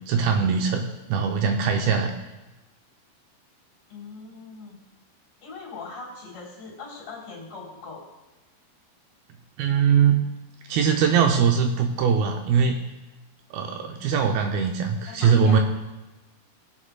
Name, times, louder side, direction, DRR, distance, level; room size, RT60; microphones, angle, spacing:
voice 1, 0.1-2.1 9.6-10.2 10.7-12.8 13.5-15.6, right 6 dB, 85° right, 4 dB, 2.3 m, -21 dB
voice 2, 3.9-4.8 5.4-8.0 13.9-14.3 15.1-15.6, left 4 dB, 40° left, -5 dB, 4.2 m, -40 dB
20.5 x 8.0 x 2.2 m, 1.1 s
omnidirectional pair, 4.8 m